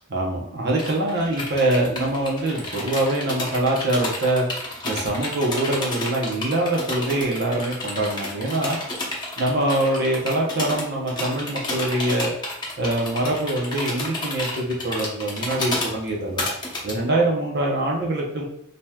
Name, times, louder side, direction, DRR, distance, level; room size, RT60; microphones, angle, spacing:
voice 1, 0.1-4.5 4.8-8.8 9.4-12.3 12.8-16.5 16.8-18.4, right 1 dB, 50° right, -2 dB, 0.8 m, -24 dB
sound 1, 0.8-16.9, left 1 dB, 20° left, 0.8 m, -31 dB
5.3 x 2.8 x 2.3 m, 0.69 s
head